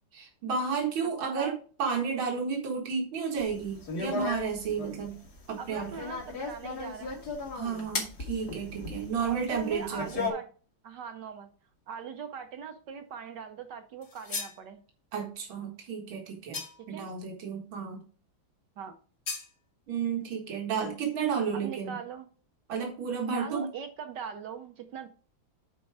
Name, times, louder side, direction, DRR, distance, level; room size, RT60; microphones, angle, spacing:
voice 1, 0.1-1.5 1.8-5.1 5.5-5.9 7.5-10.3 15.1-16.6 16.9-18.0 19.9-21.9 22.7-23.7, right 6 dB, 85° right, 2.5 m, -32 dB
voice 2, 1.0-1.6 5.6-7.2 9.2-10.5 10.8-11.5 11.9-14.8 16.9-17.1 18.8-18.9 21.5-22.2 23.3-25.1, right 7 dB, 65° right, 1.3 m, -41 dB
sound 1, 3.4-10.3, left 3 dB, 55° left, 2.4 m, -36 dB
sound 2, 14.0-14.6 16.5-17.0 19.3-19.5, left 4 dB, 35° left, 1.5 m, -37 dB
9.4 x 4.5 x 4.7 m
omnidirectional pair, 2.2 m